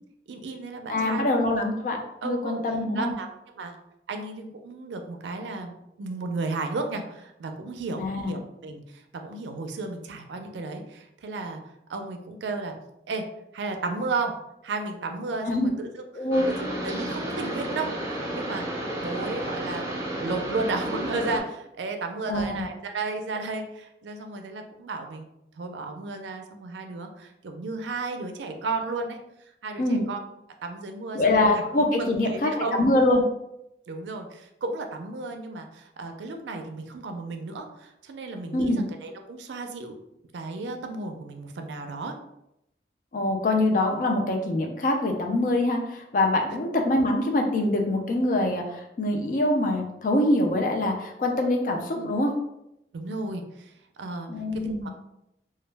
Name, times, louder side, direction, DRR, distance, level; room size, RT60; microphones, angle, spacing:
voice 1, 0.3-1.3 2.2-2.6 3.0-3.3 3.6-3.7 4.1-11.6 11.9-12.7 13.1-13.2 13.5-14.4 14.6-15.9 16.5-18.6 19.0-25.3 25.6-29.2 29.6-30.2 30.6-31.6 32.0-32.8 33.9-39.9 40.3-42.2 46.5-46.6 51.9-52.1 52.9-53.7 54.0-54.9, right 3 dB, 85° right, 5 dB, 0.4 m, -33 dB
voice 2, 0.9-3.1 8.0-8.4 15.4-15.7 16.1-16.5 22.3-22.6 29.8-30.1 31.1-33.2 38.5-38.8 43.1-52.3 54.3-54.9, left 1 dB, 50° left, 2 dB, 0.4 m, -24 dB
sound 1, 16.3-21.4, right 1 dB, 20° right, 0.5 m, -32 dB
2.2 x 2.1 x 3.2 m, 0.83 s
head